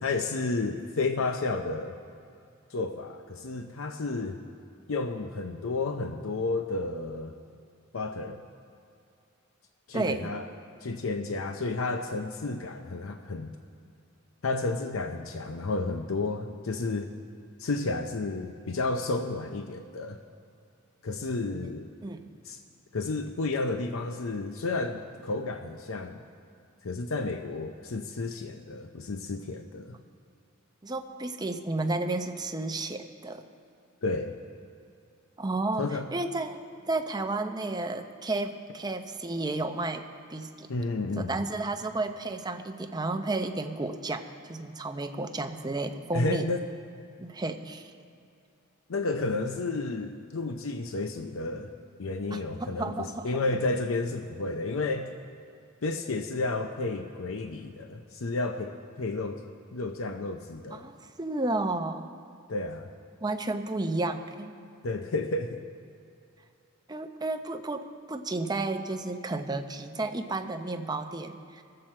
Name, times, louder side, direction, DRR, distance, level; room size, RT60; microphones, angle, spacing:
voice 1, 0.0-2.0 2.7-4.4 4.9-7.4 7.9-8.4 9.9-10.5 10.8-13.5 14.4-17.1 17.6-20.2 21.0-21.9 22.4-22.6 22.9-26.2 26.8-30.0 34.0-34.4 35.8-36.1 40.7-41.3 46.1-46.7 48.9-51.7 52.0-55.1 55.8-59.4 59.7-60.9 62.5-62.9 64.8-65.6, left 3 dB, 85° left, 6 dB, 0.7 m, -31 dB
voice 2, 9.9-10.3 22.0-22.3 30.8-33.4 35.4-40.7 41.2-46.5 47.2-47.9 52.3-53.3 60.7-62.1 63.2-64.5 66.9-71.6, right 2 dB, 20° right, 6 dB, 0.7 m, -32 dB
22.0 x 7.7 x 4.4 m, 2.4 s
head